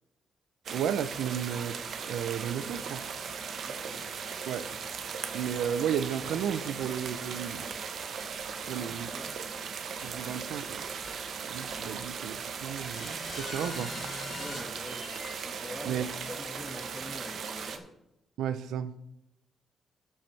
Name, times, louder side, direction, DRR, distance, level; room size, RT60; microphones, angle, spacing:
sound 1, 0.6-17.8, right 6 dB, 70° right, 1.0 m, -38 dB
voice 1, 0.7-1.8 2.0-3.0 4.5-4.7 5.3-7.6 8.7-9.1 10.0-10.9 11.5-13.9 15.8-16.1 18.4-18.9, right 9 dB, 85° right, 13 dB, 0.5 m, -33 dB
voice 2, 3.5-4.1 8.8-9.4 11.9-12.2 14.4-15.2 15.6-17.9, left 1 dB, 25° left, 5 dB, 1.6 m, -45 dB
sound 2, 8.4-8.5 8.9-9.0 10.0-10.1 11.0-11.2 11.7-11.8 12.8-15.4, left 3 dB, 55° left, 2.7 m, -43 dB
13.5 x 7.1 x 3.3 m, 0.87 s
cardioid pair, 75°, 0 cm